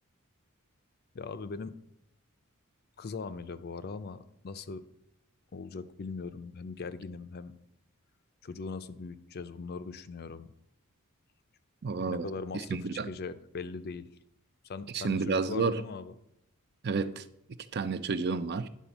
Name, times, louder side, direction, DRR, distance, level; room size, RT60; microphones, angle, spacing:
voice 1, 1.1-1.8 3.0-4.8 5.5-7.5 8.4-10.5 12.1-14.1 14.6-16.1, left 4 dB, 45° left, 0.5 m, -40 dB
voice 2, 11.8-12.3 12.5-13.1 14.9-15.8 16.8-17.3 17.7-18.7, right 4 dB, 50° right, 0.5 m, -30 dB
10.5 x 4.2 x 7.1 m
head